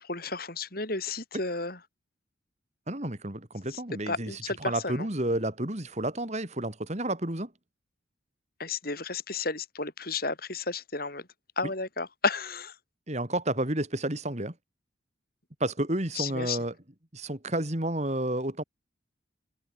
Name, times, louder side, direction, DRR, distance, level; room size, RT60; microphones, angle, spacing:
voice 1, 0.0-1.8 3.7-3.8 4.1-5.1 8.6-11.3 11.6-12.8 16.1-16.6, left 3 dB, 50° left, 6.2 m, -32 dB
voice 2, 2.9-4.3 4.6-7.5 13.1-14.5 15.6-16.7 17.1-18.6, right 1 dB, 35° right, 2.9 m, -30 dB
head